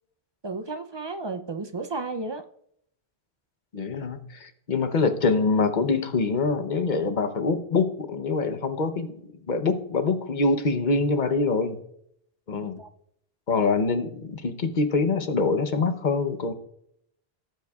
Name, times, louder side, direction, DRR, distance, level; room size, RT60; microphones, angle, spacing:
voice 1, 0.4-2.5 12.6-12.9, right 3 dB, 35° right, 8 dB, 0.4 m, -33 dB
voice 2, 3.7-9.2 9.5-11.8 12.5-12.8 13.5-16.5, left 4 dB, 50° left, 9 dB, 0.9 m, -25 dB
17.5 x 7.6 x 2.4 m, 0.71 s
omnidirectional pair, 1.1 m